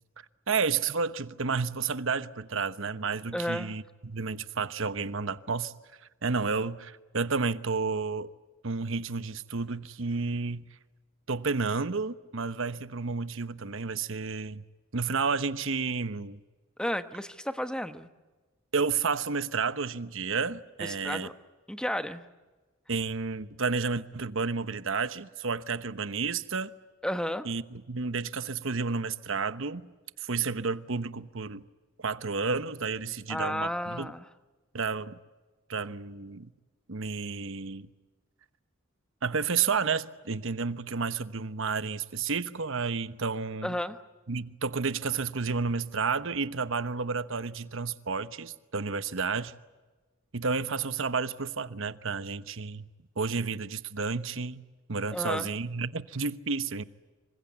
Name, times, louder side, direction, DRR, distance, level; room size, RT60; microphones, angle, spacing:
voice 1, 0.5-5.7 6.2-8.3 8.6-10.7 11.3-14.6 14.9-16.4 18.7-21.3 22.9-26.7 27.4-29.9 30.2-31.6 32.0-34.1 34.7-35.2 35.7-36.5 36.9-37.9 39.2-43.7 44.3-49.5 50.3-52.9 53.2-54.6 54.9-56.8, right 4 dB, 65° right, 1.1 m, -31 dB
voice 2, 3.3-3.7 16.8-18.1 20.8-21.3 21.7-22.2 27.0-27.5 33.3-34.3 43.6-44.0 55.1-55.5, equal, 5° left, 1.1 m, -32 dB
27.0 x 25.0 x 8.1 m
head